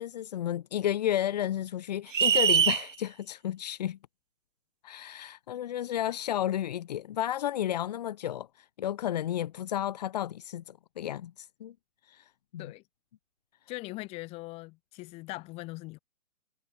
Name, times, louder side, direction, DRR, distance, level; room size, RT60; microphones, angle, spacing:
voice 1, 0.0-4.0 4.8-11.7 12.0-12.7, left 11 dB, 30° left, 4.1 m, -32 dB
sound 1, 2.1-2.8, right 8 dB, 65° right, 1.1 m, -22 dB
voice 2, 13.7-16.0, left 22 dB, 15° left, 6.9 m, -41 dB
hypercardioid pair, 175°, 41 cm